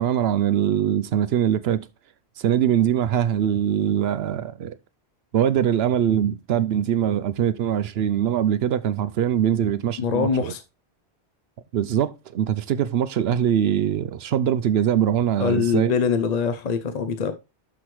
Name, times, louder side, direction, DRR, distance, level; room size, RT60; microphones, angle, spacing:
voice 1, 0.0-1.9 2.4-4.8 5.3-10.5 11.7-15.9, right 10 dB, 75° right, 0.8 m, -22 dB
voice 2, 10.0-10.6 15.4-17.3, left 6 dB, 45° left, 0.7 m, -23 dB
12.0 x 4.9 x 3.2 m
omnidirectional pair, 1.1 m